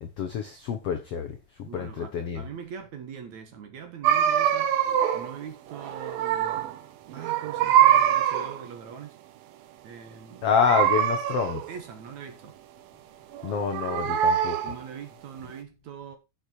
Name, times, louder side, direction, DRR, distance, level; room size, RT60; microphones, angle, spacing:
voice 1, 0.0-2.4 10.4-11.6 13.4-14.6, left 6 dB, 70° left, 1.4 m, -27 dB
voice 2, 1.6-4.8 5.1-6.6 7.1-9.2 9.8-10.5 11.7-12.6 14.6-16.2, right 7 dB, 55° right, 2.6 m, -42 dB
sound 1, 4.0-5.4 5.7-6.8 7.1-8.7 10.6-11.7 13.3-14.8, right 10 dB, 75° right, 2.7 m, -24 dB
10.5 x 6.9 x 4.5 m
omnidirectional pair, 4.3 m